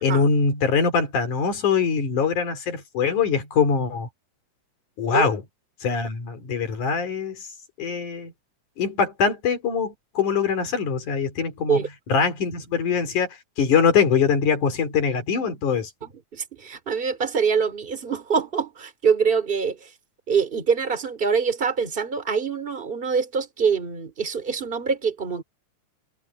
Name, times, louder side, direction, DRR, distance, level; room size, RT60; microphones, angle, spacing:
voice 1, 0.0-4.1 5.0-5.4 5.8-7.4 7.8-8.3 8.8-11.8 12.1-13.3 13.6-15.9, left 6 dB, 90° left, 5.0 m, -23 dB
voice 2, 16.0-19.9 20.3-25.4, right 6 dB, 20° right, 2.6 m, -24 dB
omnidirectional pair, 3.4 m